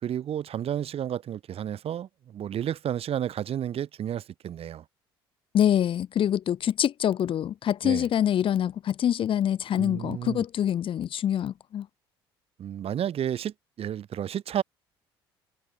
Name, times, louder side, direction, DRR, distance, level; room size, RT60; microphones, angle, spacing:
voice 1, 0.0-4.8 7.8-8.1 9.8-10.4 12.6-14.6, right 10 dB, 50° right, 5.4 m, -31 dB
voice 2, 5.5-11.9, left 10 dB, 45° left, 0.7 m, -25 dB
hypercardioid pair, 55°, 13 cm